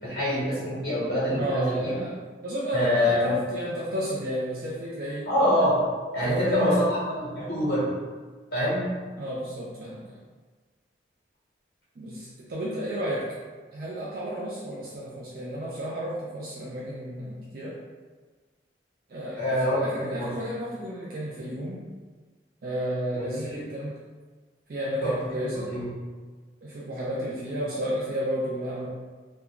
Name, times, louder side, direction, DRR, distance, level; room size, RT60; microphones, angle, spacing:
voice 1, 0.0-2.0 2.7-3.4 5.3-5.8 6.1-6.9 7.2-7.9 8.5-8.9 19.4-20.3 23.1-23.6 25.0-25.1 25.5-25.9, left 1 dB, 60° left, -9 dB, 1.0 m, -25 dB
voice 2, 1.3-5.3 6.2-6.8 9.2-10.2 12.0-13.3 13.7-17.8 19.1-21.8 22.6-24.0 24.7-25.7 26.6-28.9, equal, 55° right, -6 dB, 0.4 m, -32 dB
2.4 x 2.2 x 2.9 m, 1.4 s
head